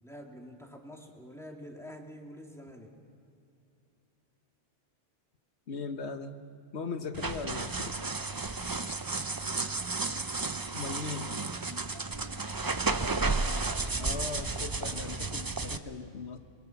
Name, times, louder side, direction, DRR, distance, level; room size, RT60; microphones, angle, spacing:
voice 1, 0.0-2.9 9.6-9.9 12.6-13.0, equal, ahead, 0 dB, 2.4 m, -47 dB
voice 2, 5.7-6.4 6.7-8.0 10.7-11.5 14.0-16.4, left 4 dB, 70° left, 8 dB, 1.4 m, -38 dB
sound 1, 7.1-15.8, right 3 dB, 25° right, 0.6 m, -33 dB
25.5 x 22.5 x 5.8 m, 2.6 s
omnidirectional pair, 1.2 m